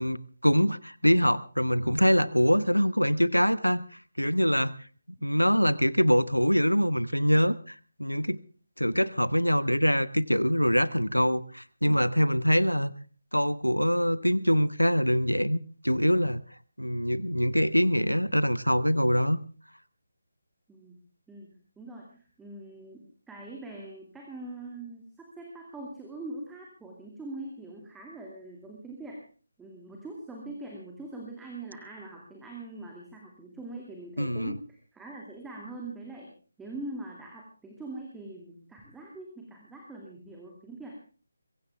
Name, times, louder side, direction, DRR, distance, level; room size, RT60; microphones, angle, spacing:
voice 1, 0.0-3.8 4.2-4.7 5.2-8.4 8.8-12.9 13.3-15.6 15.8-16.4 16.8-19.4 34.2-34.6, equal, 85° left, 17 dB, 1.0 m, -24 dB
voice 2, 21.8-29.2 29.6-36.3 36.6-41.0, right 2 dB, 5° right, -1 dB, 2.4 m, -42 dB
22.5 x 16.0 x 3.5 m, 0.38 s
figure-of-eight pair, 150°, 0 cm